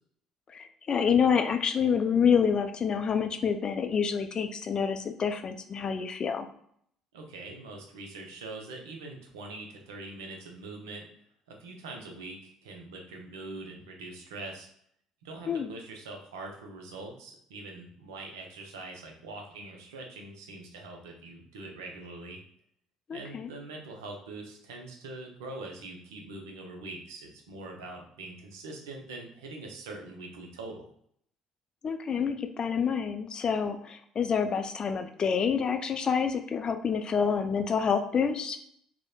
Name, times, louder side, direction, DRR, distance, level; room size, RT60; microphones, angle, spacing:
voice 1, 0.5-6.5 15.5-15.7 23.1-23.5 31.8-38.6, left 6 dB, 40° left, 7 dB, 0.3 m, -27 dB
voice 2, 7.1-11.0 11.5-14.7 15.2-22.4 23.1-30.9, right 2 dB, 85° right, 1 dB, 0.5 m, -43 dB
2.9 x 2.0 x 2.3 m, 0.67 s
hypercardioid pair, 55°, 2 cm